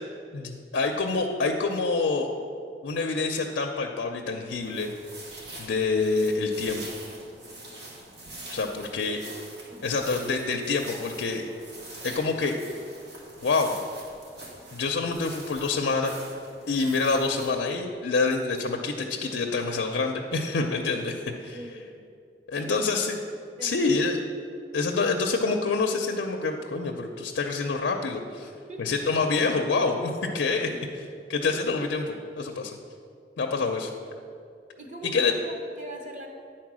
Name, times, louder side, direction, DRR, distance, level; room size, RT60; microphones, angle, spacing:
voice 1, 0.3-2.3 2.8-4.9 5.6-6.9 8.5-9.2 9.8-11.5 12.0-12.6 13.4-13.7 14.7-16.1 16.7-21.6 22.5-23.2 23.6-24.2 24.7-28.5 28.8-30.7 31.3-32.8 33.4-33.9 35.1-35.3, left 4 dB, 85° left, 2 dB, 0.5 m, -27 dB
sound 1, 4.5-17.5, right 2 dB, 85° right, 1.9 m, -44 dB
voice 2, 8.5-9.1 9.7-10.0 21.5-21.9 22.5-22.9 23.6-23.9 28.4-28.9 30.7-30.9 34.8-36.3, equal, 45° right, 2 dB, 0.8 m, -42 dB
9.4 x 4.4 x 6.1 m, 2.4 s
head